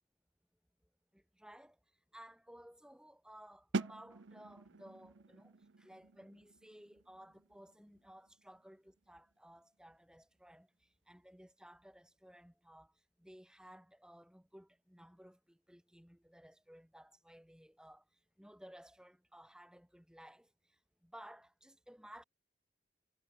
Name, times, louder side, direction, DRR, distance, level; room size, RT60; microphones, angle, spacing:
voice 1, 1.1-22.2, equal, 5° right, 2.2 m, -58 dB
sound 1, 3.7-9.5, right 3 dB, 85° right, 0.7 m, -45 dB
head